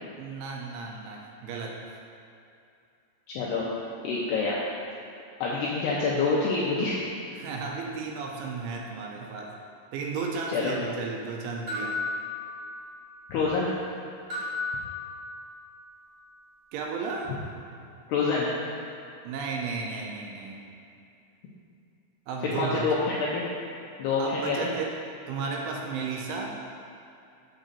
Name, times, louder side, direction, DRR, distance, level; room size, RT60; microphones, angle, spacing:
voice 1, 0.2-1.8 7.3-9.5 9.9-12.0 16.7-17.3 19.2-20.6 22.3-22.8 24.2-24.9 25.3-26.6, right 4 dB, 80° right, 0 dB, 3.1 m, -34 dB
voice 2, 3.3-3.7 4.0-4.6 5.4-7.0 10.5-10.7 13.3-13.7 18.1-18.5 22.4-23.4 24.0-24.6, left 4 dB, 80° left, -6 dB, 2.4 m, -26 dB
sound 1, 11.7-13.1 14.3-15.7, left 3 dB, 50° right, 1.3 m, -34 dB
9.1 x 3.9 x 6.7 m, 2.6 s
omnidirectional pair, 5.7 m